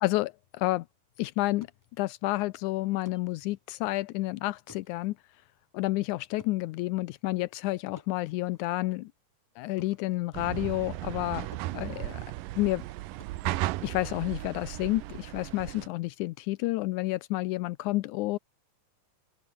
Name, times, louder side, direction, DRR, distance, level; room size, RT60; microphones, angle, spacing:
voice 1, 0.0-0.9 1.2-1.7 2.0-5.2 5.7-9.1 9.6-11.5 11.7-12.2 12.6-12.8 13.8-18.4, left 19 dB, 80° left, 1.9 m, -30 dB
sound 1, 1.6-11.3 11.5-14.5, equal, 5° left, 5.3 m, -59 dB
sound 2, 10.3-15.9, right 17 dB, 90° right, 2.4 m, -35 dB
open air
omnidirectional pair, 3.8 m